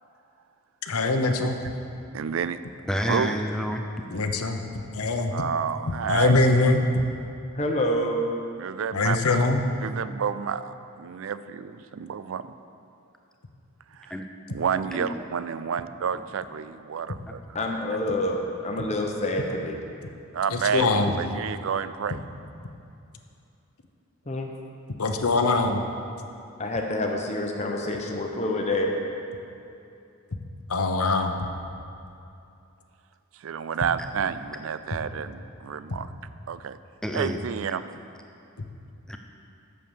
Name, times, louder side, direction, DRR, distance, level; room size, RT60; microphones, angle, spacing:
voice 1, 0.8-1.6 4.1-4.6 4.9-5.3 6.1-6.8 8.9-9.6 20.5-21.1 25.0-25.8 30.7-31.4, left 3 dB, 90° left, 5 dB, 0.8 m, -22 dB
voice 2, 2.1-2.6 3.1-3.4 5.3-6.4 8.6-9.2 9.8-12.5 13.9-14.1 14.5-17.4 20.3-22.2 33.3-36.1 36.5-36.8 37.1-37.8, right 7 dB, 65° right, 13 dB, 0.4 m, -30 dB
voice 3, 2.9-3.8 14.1-14.3 14.9-15.2 16.1-16.2 37.0-37.4 39.1-39.2, equal, 5° left, 3 dB, 0.5 m, -29 dB
voice 4, 7.5-8.3 17.5-19.8 24.3-24.5 26.6-29.0, left 1 dB, 30° left, 2 dB, 0.9 m, -27 dB
8.3 x 6.7 x 7.3 m, 2.7 s
head